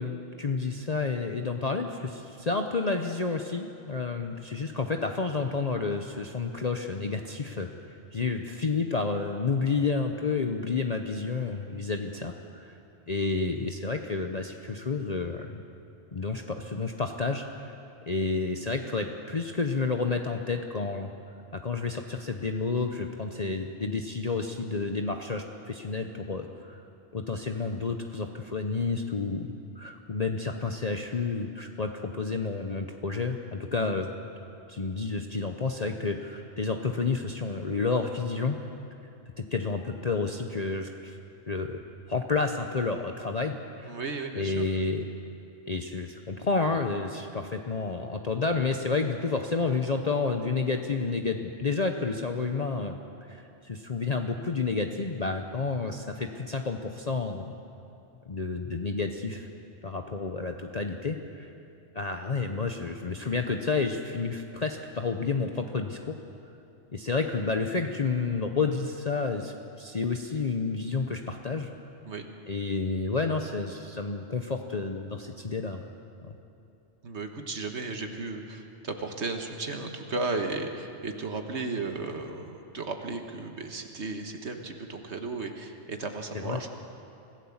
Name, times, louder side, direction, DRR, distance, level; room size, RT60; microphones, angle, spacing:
voice 1, 0.0-7.7 8.1-12.8 13.1-15.6 16.1-17.7 18.1-21.1 21.5-26.8 27.1-34.1 34.7-38.6 39.4-41.2 41.5-41.8 42.1-43.9 44.4-45.0 45.7-52.9 53.3-57.6 58.3-59.5 59.8-61.5 61.9-66.1 66.9-71.7 72.5-75.8 86.4-86.6, left 4 dB, 35° left, 4 dB, 0.9 m, -30 dB
voice 2, 43.9-44.6 72.1-72.3 77.0-86.7, right 3 dB, 65° right, 4 dB, 1.7 m, -35 dB
25.0 x 16.0 x 7.3 m, 2.7 s
omnidirectional pair, 1.3 m